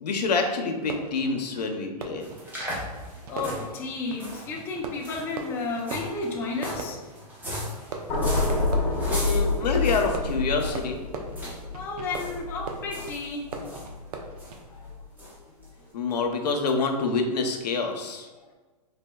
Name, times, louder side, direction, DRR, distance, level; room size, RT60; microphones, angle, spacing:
voice 1, 0.0-2.2 9.0-11.0 15.9-18.3, left 4 dB, 85° left, 4 dB, 0.7 m, -27 dB
Fireworks, 0.7-15.0, right 4 dB, 70° right, 0.6 m, -41 dB
sound 1, 2.2-10.9 11.3-11.6 11.9-12.4 12.6-13.9 14.4-14.6 15.2-15.3 15.6-15.7, equal, 10° right, 0.8 m, -38 dB
voice 2, 2.8-7.0 11.7-13.6 14.7-14.9 15.2-15.9, left 3 dB, 10° left, -1 dB, 0.3 m, -33 dB
sound 2, 8.1-14.4 14.8-15.0, left 3 dB, 30° left, 1.0 m, -28 dB
4.2 x 3.4 x 2.3 m, 1.3 s
hypercardioid pair, 145°, 21 cm